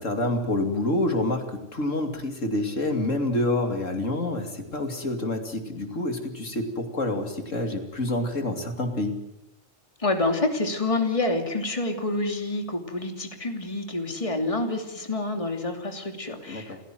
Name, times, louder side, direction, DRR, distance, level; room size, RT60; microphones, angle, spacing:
voice 1, 0.0-9.2 16.5-16.6, left 1 dB, 75° left, 5 dB, 3.2 m, -27 dB
voice 2, 10.0-16.8, left 2 dB, 25° left, 5 dB, 2.9 m, -28 dB
29.5 x 16.5 x 7.7 m, 0.93 s
omnidirectional pair, 1.3 m